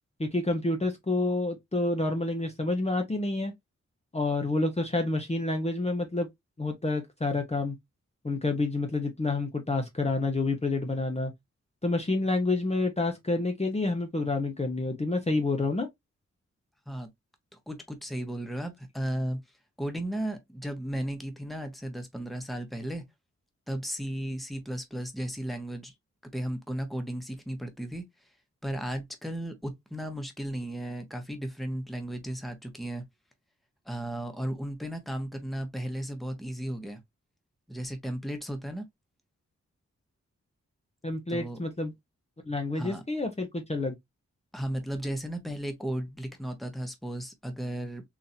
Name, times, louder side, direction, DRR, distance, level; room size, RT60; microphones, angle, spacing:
voice 1, 0.2-3.5 4.1-6.3 6.6-7.8 8.2-11.3 11.8-15.9 41.0-41.9 42.5-43.9, left 2 dB, 20° left, 0.9 m, -28 dB
voice 2, 17.5-19.4 19.8-23.0 23.7-25.9 26.3-28.0 28.6-33.0 33.8-37.0 37.7-38.9 41.3-41.6 42.7-43.0 44.5-48.0, right 1 dB, ahead, 1.1 m, -35 dB
4.0 x 2.9 x 2.7 m
wide cardioid pair, 75°, 29 cm